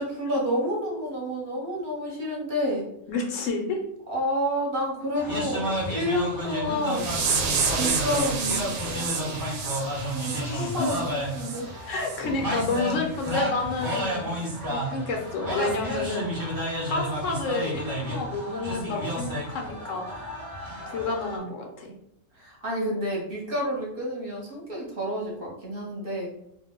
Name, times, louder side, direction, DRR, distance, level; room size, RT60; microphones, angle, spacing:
voice 1, 0.0-2.9 4.1-7.1 7.8-9.4 10.1-11.6 22.4-26.3, equal, 50° right, -3 dB, 1.0 m, -29 dB
voice 2, 3.1-3.8 10.5-10.9 11.9-14.3 14.7-16.4 16.8-20.1 20.9-21.9, left 3 dB, 80° left, 2 dB, 1.0 m, -30 dB
sound 1, 5.2-21.4, equal, 20° right, 0.7 m, -31 dB
sound 2, 6.9-11.6 12.0-12.2 12.6-12.8 13.3-13.4 13.9-14.0, right 5 dB, 85° right, 1.0 m, -30 dB
2.5 x 2.1 x 3.5 m, 0.76 s
omnidirectional pair, 1.3 m